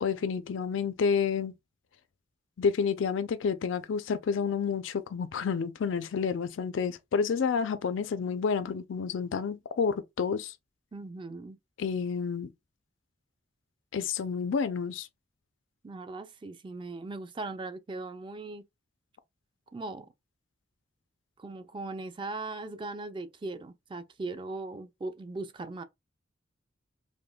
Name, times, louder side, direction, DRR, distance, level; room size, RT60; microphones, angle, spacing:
voice 1, 0.0-1.5 2.6-10.5 11.8-12.5 13.9-15.1, left 6 dB, 80° left, 0.4 m, -29 dB
voice 2, 10.9-11.6 15.8-18.6 19.7-20.1 21.4-25.8, right 3 dB, 25° right, 0.3 m, -39 dB
5.0 x 2.1 x 2.2 m
head